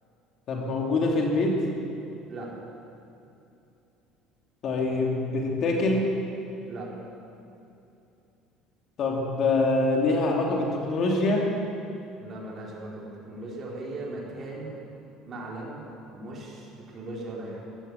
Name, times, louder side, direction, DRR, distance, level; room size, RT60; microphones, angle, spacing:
voice 1, 0.5-1.6 4.6-6.1 9.0-11.5, left 2 dB, 50° left, 0 dB, 2.8 m, -24 dB
voice 2, 12.2-14.8 15.2-16.7 16.9-17.6, right 2 dB, 40° right, -3 dB, 4.2 m, -38 dB
15.5 x 12.0 x 7.1 m, 2.7 s
supercardioid pair, 105°, 0 cm